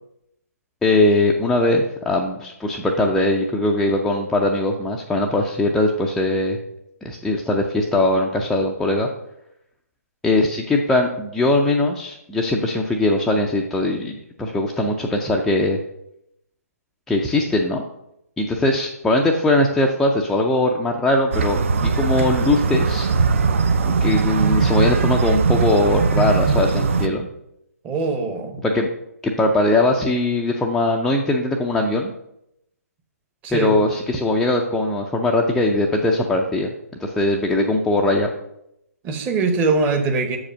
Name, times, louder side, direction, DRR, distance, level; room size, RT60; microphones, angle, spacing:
voice 1, 0.8-6.6 7.0-9.1 10.2-15.8 17.1-17.8 18.4-23.1 23.9-27.3 28.6-28.9 29.2-32.1 33.5-36.7 37.0-38.3, left 2 dB, 5° left, -1 dB, 0.4 m, -20 dB
sound 1, 21.3-27.1, right 4 dB, 50° right, 0.6 m, -20 dB
voice 2, 27.8-28.6 33.4-33.8 39.0-40.4, right 4 dB, 20° right, 6 dB, 0.9 m, -22 dB
6.5 x 4.9 x 6.2 m, 0.80 s
figure-of-eight pair, 135°, 9 cm